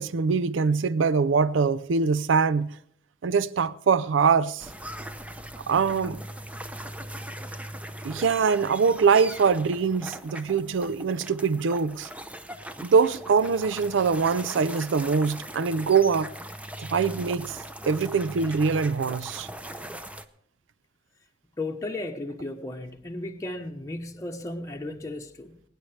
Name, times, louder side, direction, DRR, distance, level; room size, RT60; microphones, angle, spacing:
voice 1, 0.0-2.8 3.2-4.7 5.6-6.2 8.0-12.1 12.8-16.3 16.8-17.6 17.9-19.5, right 5 dB, 85° right, 0.5 m, -23 dB
sound 1, 4.6-20.2, right 1 dB, 5° right, 0.6 m, -40 dB
voice 2, 21.6-25.6, left 2 dB, 15° left, 0.9 m, -35 dB
23.0 x 9.9 x 3.3 m
head